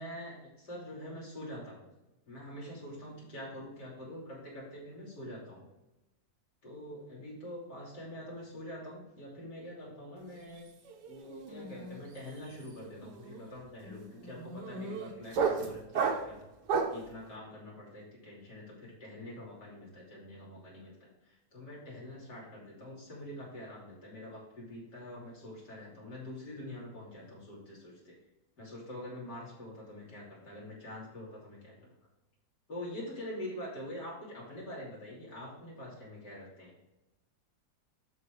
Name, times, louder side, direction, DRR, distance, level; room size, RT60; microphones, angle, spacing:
voice 1, 0.0-1.9 2.3-5.6 6.6-10.7 11.1-16.4 16.9-28.1 28.6-31.8 32.7-36.8, left 1 dB, 85° left, -5 dB, 3.7 m, -45 dB
sound 1, 10.3-10.6 10.8-17.1, right 5 dB, 85° right, 1.6 m, -34 dB
11.5 x 4.1 x 3.7 m, 0.98 s
omnidirectional pair, 1.8 m